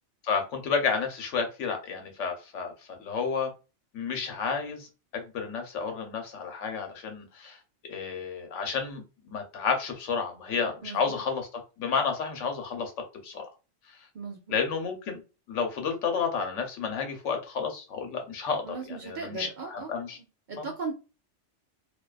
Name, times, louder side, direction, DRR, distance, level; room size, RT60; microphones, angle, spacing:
voice 1, 0.2-2.7 3.0-3.5 3.9-4.9 5.1-7.6 7.9-12.9 13.2-13.5 14.5-15.2 15.5-20.2 20.6-20.7, left 5 dB, 85° left, 1.1 m, -31 dB
voice 2, 10.8-11.2 14.1-14.6 18.6-19.9 20.5-20.9, right 4 dB, 55° right, 0.5 m, -37 dB
2.5 x 2.3 x 2.3 m
omnidirectional pair, 1.2 m